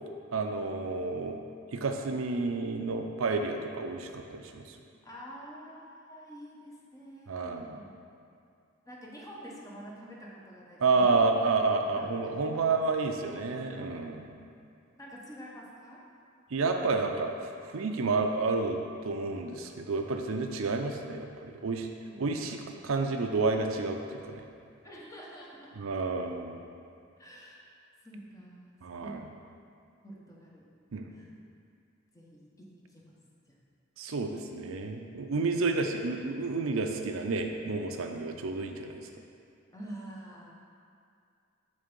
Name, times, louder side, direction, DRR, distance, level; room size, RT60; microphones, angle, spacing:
voice 1, 0.3-1.4 1.7-4.8 7.3-7.6 10.8-14.3 16.5-17.3 17.6-21.9 22.2-24.4 25.8-26.6 28.8-29.2 30.9-31.1 34.0-39.0, right 3 dB, 75° right, 4 dB, 0.5 m, -30 dB
voice 2, 5.0-7.9 8.8-11.4 11.8-12.8 15.0-16.0 24.8-25.7 27.2-27.7 28.0-28.6 29.0-29.2 30.0-30.7 31.1-31.4 32.1-32.4 32.9-33.2 33.5-33.6 39.7-40.5, right 1 dB, 15° left, -4 dB, 0.9 m, -47 dB
7.4 x 3.4 x 5.2 m, 2.4 s
head